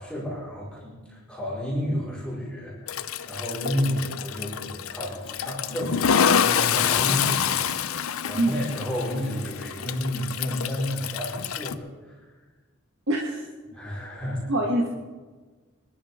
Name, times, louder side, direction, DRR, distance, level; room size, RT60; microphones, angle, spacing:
voice 1, 0.0-7.7 8.2-12.2 13.7-14.5, equal, 5° left, -8 dB, 5.0 m, -31 dB
Toilet flush, 2.9-11.7, left 7 dB, 90° left, 0.6 m, -27 dB
voice 2, 13.1-13.4 14.5-14.9, right 1 dB, 60° right, -2 dB, 1.8 m, -24 dB
26.0 x 12.5 x 3.7 m, 1.4 s
head